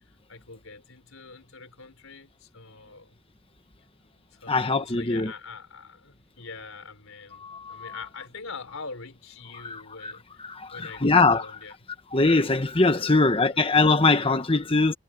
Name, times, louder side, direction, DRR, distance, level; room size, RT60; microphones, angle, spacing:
voice 1, 0.3-3.2 4.3-10.4 10.7-11.8 13.0-13.7, left 4 dB, 75° left, 4.0 m, -44 dB
voice 2, 4.5-5.3 7.4-8.0 9.6-10.1 10.4-11.5 12.1-14.9, left 3 dB, 25° left, 1.3 m, -22 dB
head